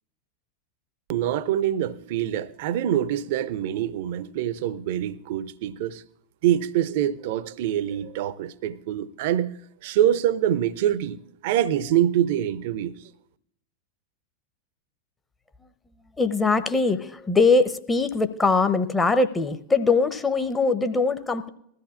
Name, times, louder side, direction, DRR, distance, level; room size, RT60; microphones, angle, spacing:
voice 1, 1.1-6.0 6.4-9.6 9.8-12.9, right 11 dB, 50° right, 0.5 m, -25 dB
voice 2, 16.2-21.5, left 3 dB, 10° left, 0.7 m, -22 dB
20.5 x 14.0 x 2.4 m
figure-of-eight pair, 90°, 0 cm